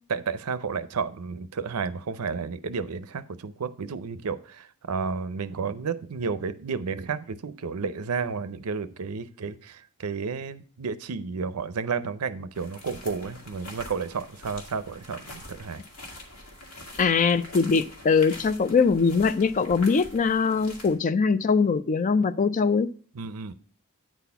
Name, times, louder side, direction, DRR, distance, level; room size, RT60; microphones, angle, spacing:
voice 1, 0.1-15.8 23.1-23.5, right 5 dB, 80° right, 0.6 m, -32 dB
sound 1, 12.5-20.9, left 1 dB, 85° left, 2.0 m, -44 dB
voice 2, 17.0-22.9, left 5 dB, 35° left, 0.4 m, -22 dB
9.1 x 4.2 x 5.6 m
head